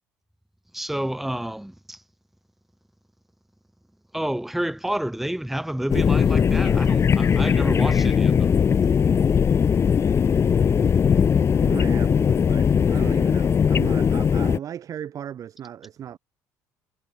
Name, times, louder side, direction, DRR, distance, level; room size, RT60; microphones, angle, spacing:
voice 1, 0.7-2.0 4.1-8.5, right 1 dB, 5° right, 0.9 m, -29 dB
sound 1, 5.9-14.6, left 7 dB, 40° left, 0.9 m, -19 dB
voice 2, 11.6-16.2, right 9 dB, 50° right, 2.1 m, -36 dB
supercardioid pair, 80°, 7 cm